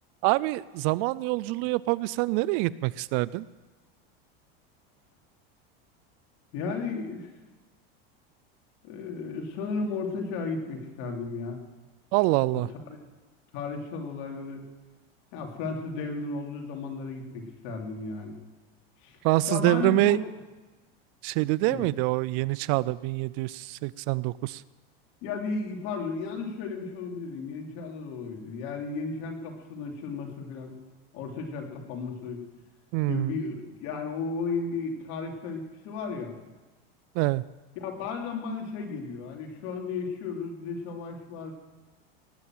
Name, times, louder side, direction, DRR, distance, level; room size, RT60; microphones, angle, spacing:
voice 1, 0.2-3.5 12.1-12.7 19.2-20.2 21.2-24.6 32.9-33.4 37.1-37.4, right 20 dB, 50° right, 20 dB, 0.4 m, -25 dB
voice 2, 6.5-7.3 8.8-11.6 12.5-12.6 12.9-13.0 13.5-14.6 15.3-18.4 19.0-19.2 19.5-20.2 21.7-21.8 25.2-30.7 31.1-32.4 33.1-36.3 37.8-41.5, left 4 dB, 60° left, 2 dB, 3.0 m, -34 dB
19.0 x 7.1 x 7.6 m, 1.2 s
supercardioid pair, 125°, 30 cm